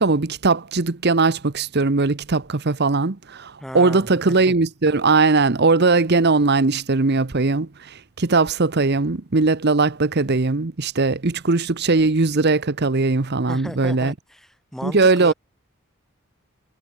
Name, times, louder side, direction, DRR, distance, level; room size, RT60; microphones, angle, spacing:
voice 1, 0.0-14.1 14.8-15.3, right 3 dB, 45° right, 0.9 m, -19 dB
voice 2, 3.6-4.5 13.5-15.3, equal, ahead, 4.1 m, -35 dB
head